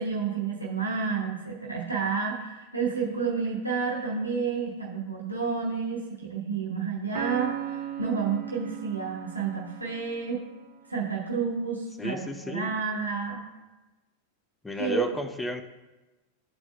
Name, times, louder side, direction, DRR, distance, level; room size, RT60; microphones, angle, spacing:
voice 1, 0.0-10.4 10.9-13.4 14.8-15.0, right 5 dB, 85° right, -4 dB, 0.9 m, -30 dB
Piano, 7.1-10.7, right 11 dB, 40° right, 1.1 m, -37 dB
voice 2, 12.0-12.7 14.6-15.6, left 1 dB, 10° left, 7 dB, 0.5 m, -32 dB
12.0 x 4.4 x 2.2 m, 1.1 s
figure-of-eight pair, 90°, 0 cm